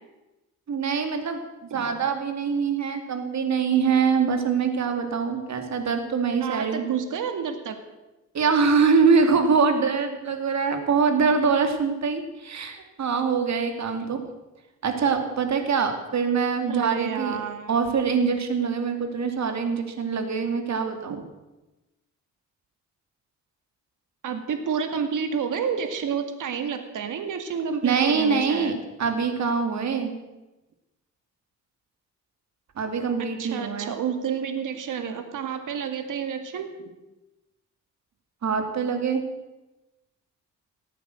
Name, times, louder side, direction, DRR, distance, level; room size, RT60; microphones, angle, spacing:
voice 1, 0.7-1.4 1.7-6.8 8.3-14.2 14.8-17.4 17.7-21.2 27.8-28.7 29.0-30.1 32.8-33.9 38.4-39.2, right 5 dB, 60° right, 6 dB, 2.7 m, -24 dB
voice 2, 1.7-2.0 6.4-7.8 14.0-14.1 16.7-17.7 21.1-21.3 24.2-28.8 33.4-36.7, right 7 dB, 80° right, 7 dB, 2.2 m, -30 dB
18.0 x 9.2 x 7.9 m, 1.0 s
cardioid pair, 90°, 31 cm